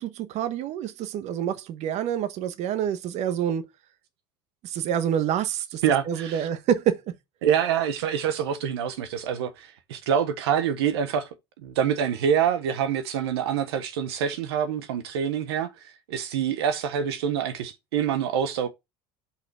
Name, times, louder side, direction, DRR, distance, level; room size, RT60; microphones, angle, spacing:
voice 1, 0.0-3.6 4.6-7.0, right 9 dB, 60° right, 1.1 m, -27 dB
voice 2, 5.8-6.5 7.4-11.3 11.6-15.7 16.1-18.7, right 8 dB, 90° right, 1.0 m, -26 dB
5.7 x 3.9 x 6.0 m
supercardioid pair, 95°, 13 cm